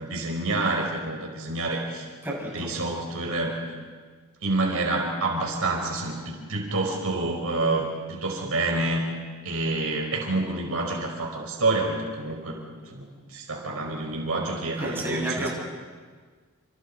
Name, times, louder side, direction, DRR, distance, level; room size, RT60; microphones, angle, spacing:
voice 1, 0.0-2.1 2.4-3.6 4.4-9.1 9.4-12.6 12.9-15.5, right 2 dB, 75° right, 0 dB, 4.7 m, -28 dB
voice 2, 2.2-2.7 14.8-15.5, right 1 dB, 10° right, -4 dB, 6.6 m, -30 dB
28.5 x 27.5 x 4.3 m, 1.5 s
head